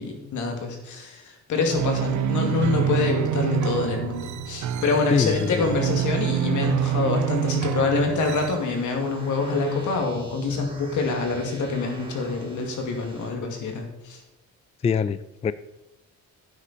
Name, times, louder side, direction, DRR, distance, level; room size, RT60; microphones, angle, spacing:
voice 1, 0.0-14.2, left 4 dB, 75° left, 3 dB, 2.4 m, -26 dB
sound 1, 1.7-8.6, right 11 dB, 70° right, 0.8 m, -26 dB
voice 2, 5.1-5.8 14.8-15.5, left 6 dB, 20° left, 15 dB, 0.3 m, -24 dB
sound 2, 8.3-13.3, right 1 dB, 15° right, 2.8 m, -44 dB
9.9 x 8.1 x 4.3 m, 0.94 s
cardioid pair, 90°, 30 cm